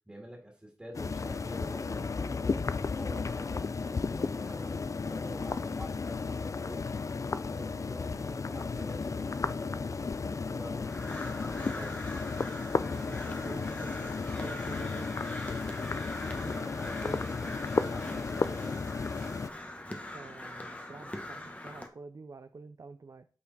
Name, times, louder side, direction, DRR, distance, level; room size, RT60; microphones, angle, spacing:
voice 1, 0.1-6.9 7.2-12.0 16.3-18.8, equal, 10° right, -1 dB, 2.0 m, -47 dB
sound 1, 0.9-19.5, left 4 dB, 50° left, 0.3 m, -34 dB
Crow, 10.8-21.9, left 1 dB, 20° left, 1.1 m, -42 dB
voice 2, 12.9-15.2 19.9-23.3, right 4 dB, 55° right, 9 dB, 0.5 m, -48 dB
8.5 x 4.2 x 4.1 m, 0.40 s
wide cardioid pair, 75°, 7 cm